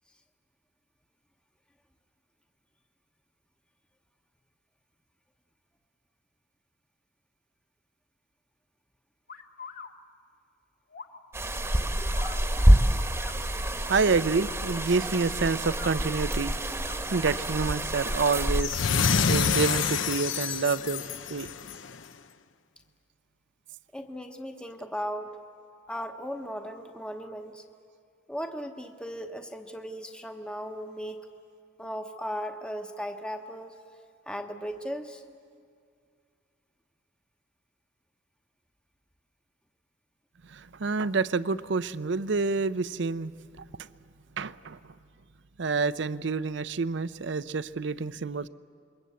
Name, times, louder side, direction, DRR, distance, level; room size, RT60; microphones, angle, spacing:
sound 1, 9.3-9.9 10.9-11.2 12.1-12.4 13.2-13.4 14.3-14.6 15.7-16.0 16.7-17.0 17.8-18.3 19.1-19.5 20.8-21.0, left 6 dB, 50° left, 1.2 m, -45 dB
sound 2, 11.3-18.6, right 1 dB, 15° right, 1.2 m, -26 dB
voice 1, 13.9-16.6 17.1-21.0 21.3-21.5 40.5-43.3 43.6-43.9 44.4-44.9 45.6-48.5, right 4 dB, 65° right, 15 dB, 0.6 m, -28 dB
sound 3, 18.6-21.9, left 6 dB, 85° left, 0.8 m, -27 dB
voice 2, 23.9-25.3 25.9-27.6 28.3-31.3 31.8-33.7 34.3-35.2, equal, 5° left, 5 dB, 1.0 m, -37 dB
27.5 x 22.0 x 8.2 m, 2.2 s
head